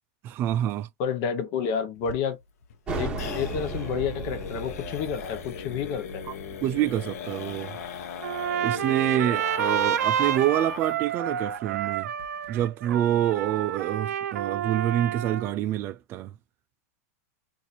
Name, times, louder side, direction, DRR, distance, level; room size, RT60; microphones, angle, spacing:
voice 1, 0.2-0.9 6.3-6.4 6.6-7.8 8.6-12.1 12.5-16.3, right 12 dB, 25° right, 0.3 m, -27 dB
voice 2, 1.0-2.4 3.0-6.2, left 7 dB, 40° left, 0.8 m, -30 dB
sound 1, 2.0-11.1 11.4-11.5 11.8-11.9 12.2-12.6, left 7 dB, 75° left, 0.8 m, -38 dB
sound 2, 2.9-8.2, right 2 dB, 10° right, 1.3 m, -36 dB
Trumpet, 8.2-15.6, right 9 dB, 90° right, 0.4 m, -29 dB
2.6 x 2.6 x 4.2 m
supercardioid pair, 155°, 8 cm